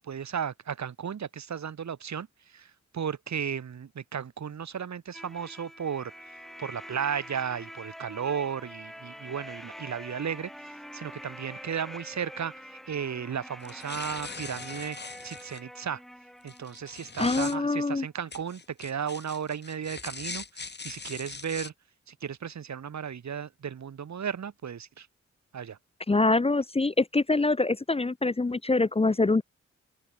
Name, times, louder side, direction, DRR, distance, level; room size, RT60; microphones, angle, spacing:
voice 1, 0.0-2.3 2.5-2.7 2.9-6.1 6.6-10.5 10.9-15.0 15.2-16.0 16.4-21.7 22.1-25.1 25.5-25.8, right 7 dB, 70° right, 2.7 m, -34 dB
sound 1, 5.1-17.8, equal, ahead, 6.7 m, -45 dB
sound 2, 13.6-15.6 16.5-17.6 18.3-21.7, left 4 dB, 35° left, 5.2 m, -41 dB
voice 2, 17.2-18.1 26.1-29.4, left 3 dB, 20° left, 0.9 m, -24 dB
open air
wide cardioid pair, 145°, 29 cm